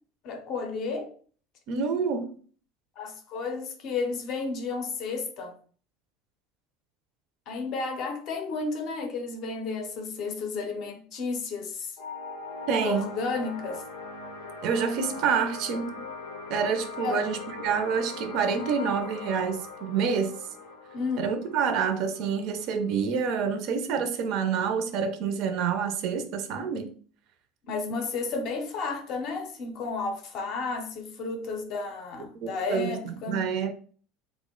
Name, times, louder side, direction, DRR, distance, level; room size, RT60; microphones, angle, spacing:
voice 1, 0.2-1.1 3.0-5.6 7.5-11.9 12.8-13.8 17.0-17.3 20.9-21.3 27.7-33.4, left 4 dB, 40° left, 0.5 m, -32 dB
voice 2, 1.7-2.3 12.7-13.1 14.6-16.0 16.5-20.4 21.2-26.9 32.4-33.7, right 6 dB, 45° right, 0.4 m, -27 dB
sound 1, 12.0-23.0, left 4 dB, 85° left, 0.6 m, -40 dB
3.5 x 2.0 x 3.6 m
cardioid pair, 175°, 0 cm